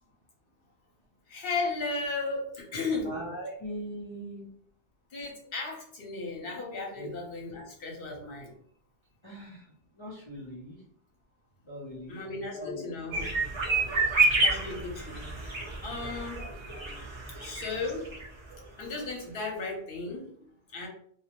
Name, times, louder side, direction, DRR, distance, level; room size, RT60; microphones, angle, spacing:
voice 1, 1.3-3.1 5.1-8.5 12.1-13.3 14.4-16.4 17.4-18.1 18.8-20.9, left 3 dB, 60° left, -1 dB, 0.9 m, -35 dB
voice 2, 3.0-4.5 5.4-5.5 6.9-7.1 9.2-10.8 11.6-12.2 12.5-13.1, equal, 35° left, -6 dB, 0.5 m, -41 dB
sound 1, 13.1-18.3 18.5-18.6 18.9-19.0, right 3 dB, 40° right, 0.4 m, -29 dB
2.3 x 2.0 x 2.8 m, 0.62 s
omnidirectional pair, 1.1 m